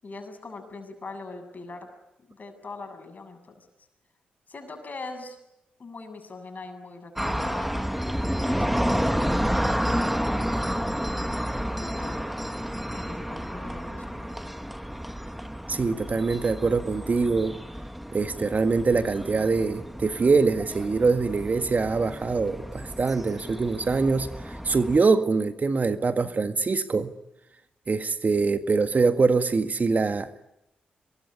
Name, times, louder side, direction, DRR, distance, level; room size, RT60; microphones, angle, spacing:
voice 1, 0.0-1.9 2.3-3.7 4.5-5.4 5.8-7.7 8.1-11.0 11.7-12.2 12.8-14.3, left 3 dB, 45° left, 7.5 m, -41 dB
sound 1, 7.2-25.0, equal, 5° right, 1.6 m, -30 dB
voice 2, 15.7-17.6 18.1-24.3 24.6-27.1 27.9-30.3, right 4 dB, 45° right, 1.8 m, -23 dB
24.0 x 22.0 x 10.0 m
supercardioid pair, 45°, 4 cm